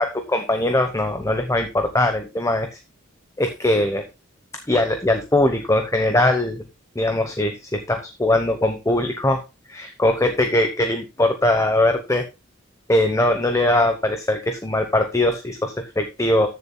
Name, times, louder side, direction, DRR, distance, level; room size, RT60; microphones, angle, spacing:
voice 1, 0.0-2.8 3.4-4.1 4.7-6.6 6.9-9.4 9.7-12.2 12.9-16.5, left 1 dB, 15° left, 6 dB, 1.0 m, -21 dB
14.5 x 6.9 x 2.3 m, 0.26 s
head